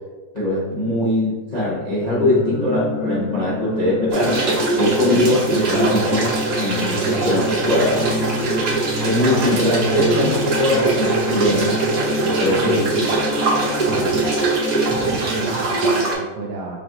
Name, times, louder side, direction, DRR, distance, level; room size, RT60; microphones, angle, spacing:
voice 1, 0.3-8.1 9.0-11.8 12.2-12.8, left 1 dB, 40° left, -8 dB, 0.6 m, -21 dB
sound 1, 2.1-15.2, left 1 dB, 80° left, 1.6 m, -28 dB
sound 2, 4.1-16.1, right 3 dB, 50° right, 1.3 m, -22 dB
sound 3, 5.3-13.1, left 5 dB, 35° right, 0.7 m, -34 dB
voice 2, 6.9-7.3 12.6-13.1 13.5-14.3 14.9-16.8, right 2 dB, 70° right, 0 dB, 1.1 m, -30 dB
6.9 x 2.5 x 2.9 m, 1.2 s
omnidirectional pair, 2.1 m